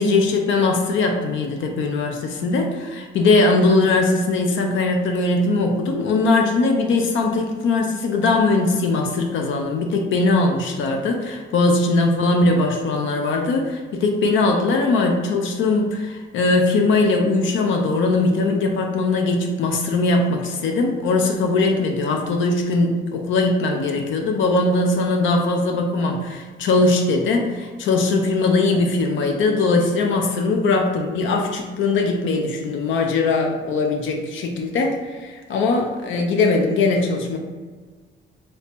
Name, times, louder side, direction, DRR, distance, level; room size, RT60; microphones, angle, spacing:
voice 1, 0.0-37.4, left 3 dB, 75° left, 3 dB, 0.5 m, -20 dB
2.9 x 2.7 x 3.5 m, 1.4 s
cardioid pair, 90°, 20 cm